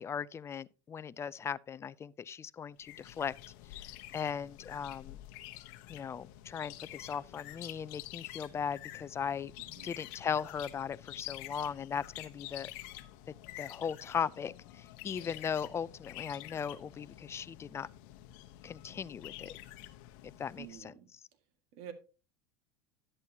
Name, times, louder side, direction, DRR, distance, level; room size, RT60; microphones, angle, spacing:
voice 1, 0.0-3.3 3.7-3.8 4.1-5.2 5.9-9.5 9.8-12.7 13.6-17.9 18.6-19.5 20.4-20.9, left 7 dB, 25° left, 0.4 m, -38 dB
sound 1, 2.8-20.8, left 15 dB, 70° left, 1.0 m, -48 dB
voice 2, 9.6-9.9 20.6-21.1 21.7-21.9, right 9 dB, 65° right, 1.9 m, -48 dB
11.0 x 8.8 x 2.9 m
supercardioid pair, 105°, 11 cm